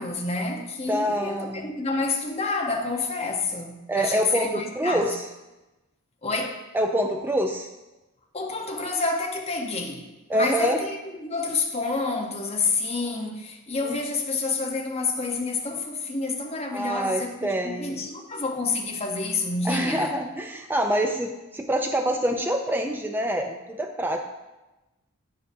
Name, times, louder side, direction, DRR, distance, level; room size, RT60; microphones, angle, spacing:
voice 1, 0.0-5.1 6.2-6.6 8.3-20.2, left 3 dB, 30° left, 2 dB, 0.8 m, -29 dB
voice 2, 0.9-1.7 3.9-5.3 6.7-7.7 10.3-10.8 13.8-14.0 16.7-18.1 19.6-24.2, equal, 10° right, 4 dB, 0.4 m, -26 dB
8.9 x 7.5 x 2.6 m, 1.0 s
head